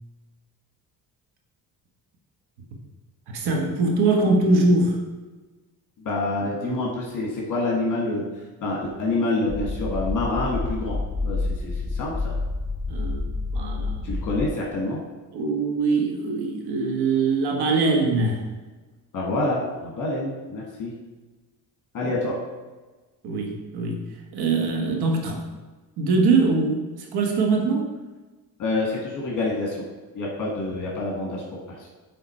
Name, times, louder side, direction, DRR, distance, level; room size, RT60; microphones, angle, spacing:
voice 1, 3.3-5.0 6.6-6.8 12.9-13.9 15.3-18.5 22.0-22.1 23.2-24.0 24.3-25.4 26.0-26.8 27.1-27.9, right 3 dB, 70° right, 2 dB, 1.5 m, -22 dB
voice 2, 6.0-8.2 8.6-11.0 11.2-12.3 14.0-15.0 19.1-20.9 21.9-22.4 28.6-29.8 30.1-31.4 31.7-31.9, left 2 dB, 50° left, -3 dB, 1.9 m, -27 dB
sound 1, 9.5-14.5, left 3 dB, 10° left, 0.5 m, -28 dB
7.8 x 3.9 x 4.4 m, 1.3 s
cardioid pair, 105°, 40 cm